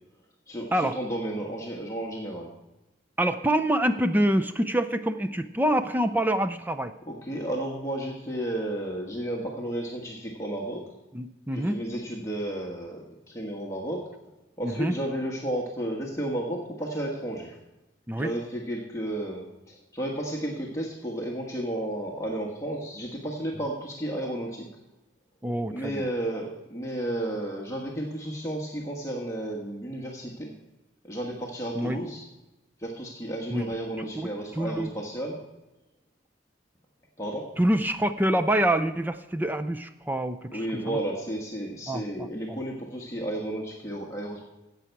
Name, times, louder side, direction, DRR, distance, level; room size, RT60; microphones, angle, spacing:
voice 1, 0.5-2.5 7.1-10.8 11.5-14.0 14.6-17.6 18.2-24.7 25.7-30.5 31.0-32.2 32.8-35.4 37.2-37.5 40.5-44.5, right 1 dB, 15° left, -2 dB, 1.4 m, -32 dB
voice 2, 3.2-6.9 11.1-11.8 14.6-14.9 18.1-18.3 25.4-26.0 31.8-32.0 33.5-33.7 34.0-34.3 34.6-34.9 37.6-41.0 41.9-42.6, right 1 dB, 10° right, 9 dB, 0.4 m, -26 dB
14.5 x 8.2 x 4.6 m, 0.99 s
head